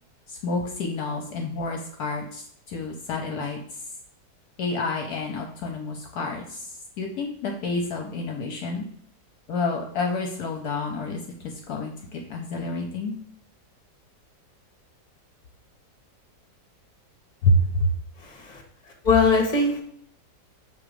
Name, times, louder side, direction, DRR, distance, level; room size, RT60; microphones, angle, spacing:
voice 1, 0.3-3.6 4.6-8.8 9.5-13.2 17.4-17.9, left 2 dB, 70° left, 2 dB, 1.2 m, -28 dB
voice 2, 18.2-18.6 19.0-19.8, left 4 dB, 25° left, 2 dB, 1.2 m, -21 dB
6.4 x 3.0 x 4.9 m, 0.65 s
omnidirectional pair, 1.9 m